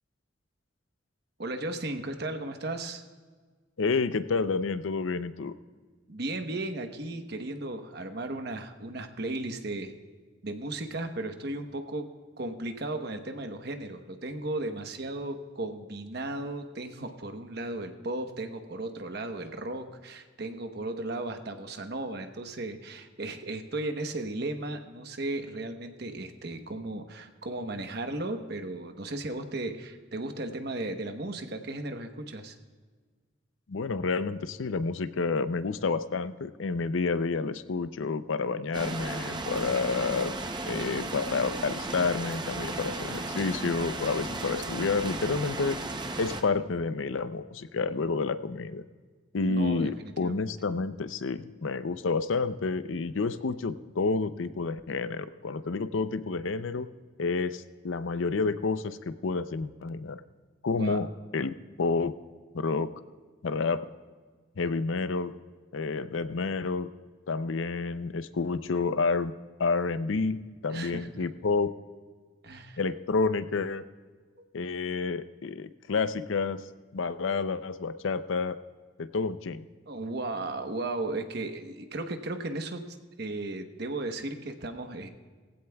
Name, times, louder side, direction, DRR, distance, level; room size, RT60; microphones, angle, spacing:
voice 1, 1.4-3.0 6.1-9.9 10.4-32.5 49.5-50.5 60.8-61.0 70.7-71.2 72.4-72.8 74.4-74.5 79.9-85.1, right 2 dB, 55° right, 6 dB, 1.0 m, -35 dB
voice 2, 3.8-5.5 33.7-40.3 40.7-45.8 46.2-48.8 49.3-56.9 57.2-60.2 60.6-61.1 61.3-62.1 62.5-62.9 63.4-63.9 64.6-65.3 65.7-66.9 67.3-69.3 69.6-71.7 72.8-73.8 74.5-76.6 76.9-78.6 79.0-79.6, left 4 dB, 80° left, 13 dB, 0.6 m, -29 dB
sound 1, 38.7-46.4, right 2 dB, 25° right, 0.7 m, -35 dB
19.0 x 15.5 x 2.3 m, 1.5 s
head